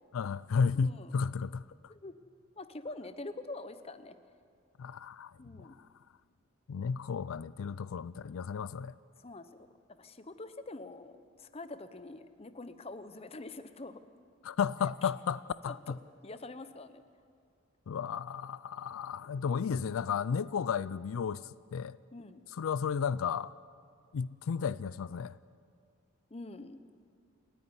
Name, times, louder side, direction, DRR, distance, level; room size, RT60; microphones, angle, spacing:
voice 1, 0.1-1.6 4.8-5.3 5.6-5.7 6.7-8.9 14.4-16.0 17.9-22.0 22.5-23.5 24.1-25.4, left 6 dB, 85° left, 0.4 m, -33 dB
voice 2, 0.7-1.2 1.9-2.2 2.6-4.2 5.4-5.8 9.2-9.6 10.0-14.0 15.0-15.1 15.7-16.0 16.2-17.0 22.1-22.4 26.3-26.8, left 2 dB, 30° left, 0.8 m, -45 dB
28.5 x 9.5 x 9.7 m
head